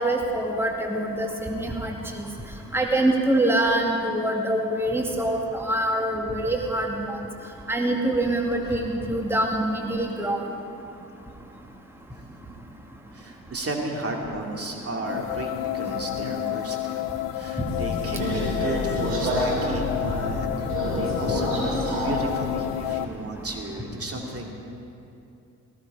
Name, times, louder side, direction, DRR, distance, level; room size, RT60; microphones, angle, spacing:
voice 1, 0.0-2.3 2.7-7.2 7.7-10.4, right 1 dB, 5° right, 1 dB, 2.3 m, -25 dB
voice 2, 13.1-24.5, right 2 dB, 40° right, 1 dB, 2.6 m, -34 dB
sound 1, 15.0-23.0, left 15 dB, 60° left, 0.6 m, -30 dB
Subway metro underground, 17.7-22.8, equal, 80° right, 3.2 m, -29 dB
18.5 x 15.5 x 5.0 m, 2.7 s
hypercardioid pair, 45°, 38 cm